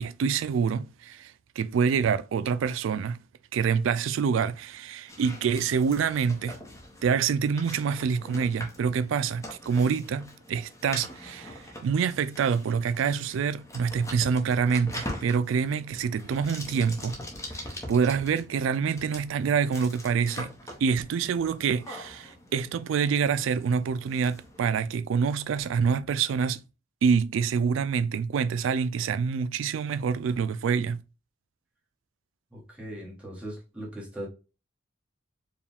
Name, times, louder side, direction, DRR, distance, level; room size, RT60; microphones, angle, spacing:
voice 1, 0.0-3.2 3.5-6.6 7.0-17.1 17.5-17.6 17.9-20.5 20.8-26.6 27.0-31.0, right 6 dB, 70° right, 0.3 m, -26 dB
sound 1, 5.1-24.9, left 1 dB, 15° left, 0.9 m, -43 dB
voice 2, 32.5-34.3, right 1 dB, 5° right, 1.3 m, -39 dB
4.7 x 2.3 x 3.4 m
head